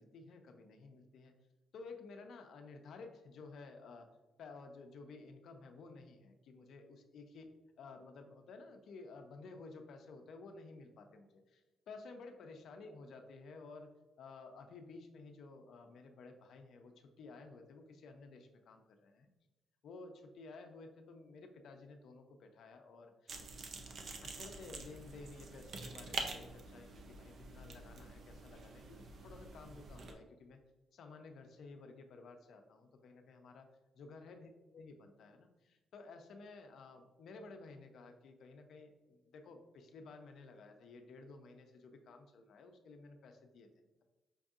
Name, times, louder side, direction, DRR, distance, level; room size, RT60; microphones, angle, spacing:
voice 1, 0.0-1.3 1.7-4.1 4.4-11.6 11.9-13.9 14.2-19.3 19.8-23.3 24.2-30.6 30.9-33.7 34.0-44.0, left 3 dB, 70° left, 5 dB, 0.5 m, -54 dB
sound 1, 23.3-30.1, right 3 dB, 55° right, 0.5 m, -47 dB
5.2 x 2.6 x 2.4 m, 1.1 s
cardioid pair, 115°, 0 cm